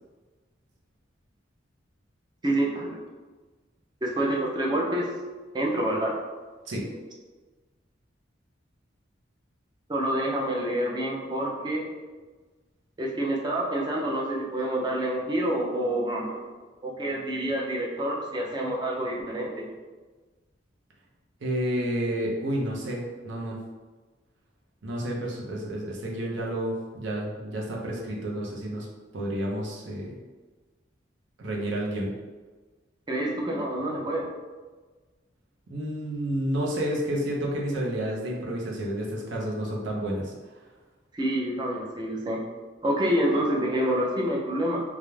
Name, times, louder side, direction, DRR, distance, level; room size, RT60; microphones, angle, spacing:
voice 1, 2.4-2.9 4.0-5.1 5.5-6.2 9.9-11.8 13.0-16.4 16.8-19.7 33.1-34.3 41.1-42.4 42.8-44.8, right 1 dB, 20° right, -2 dB, 0.4 m, -27 dB
voice 2, 21.4-23.6 24.8-28.9 29.1-30.2 31.4-32.1 35.7-40.5, right 1 dB, 75° right, -2 dB, 0.6 m, -30 dB
2.4 x 2.0 x 3.0 m, 1.3 s
head